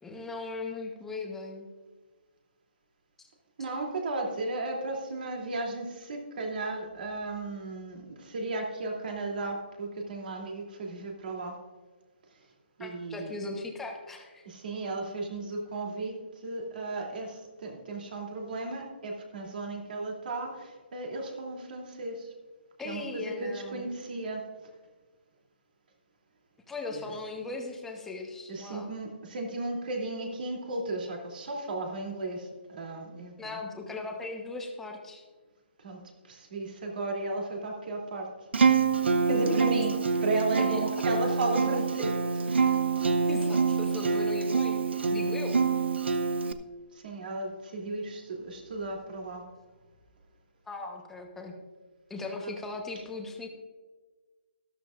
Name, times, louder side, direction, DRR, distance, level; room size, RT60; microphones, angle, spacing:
voice 1, 0.0-1.7 12.8-14.4 22.8-23.9 26.7-28.9 33.4-35.2 39.3-39.6 40.7-40.9 43.0-45.6 50.7-51.5 52.1-53.5, left 3 dB, 5° left, 2 dB, 1.1 m, -38 dB
voice 2, 3.6-11.6 12.3-12.5 12.8-13.3 14.4-22.3 22.8-24.5 26.9-27.1 28.5-33.6 35.8-36.0 36.2-38.5 39.3-42.7 46.9-49.4 52.4-52.5, right 2 dB, 55° right, 0 dB, 2.9 m, -35 dB
Acoustic guitar, 38.5-46.5, right 5 dB, 75° right, 0.9 m, -26 dB
13.0 x 13.0 x 2.5 m, 1.4 s
hypercardioid pair, 165°, 6 cm